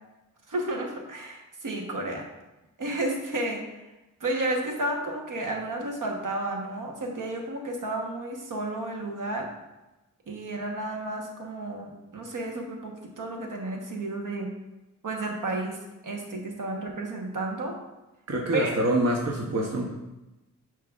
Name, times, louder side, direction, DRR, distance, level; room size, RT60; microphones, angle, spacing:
voice 1, 0.5-2.3 2.8-3.7 4.2-9.5 10.3-14.5 15.0-17.8 18.5-18.7, right 2 dB, 70° right, 2 dB, 1.1 m, -32 dB
voice 2, 18.3-19.9, right 1 dB, 50° right, 0 dB, 0.8 m, -26 dB
10.5 x 4.7 x 2.4 m, 1.0 s
wide cardioid pair, 135°, 32 cm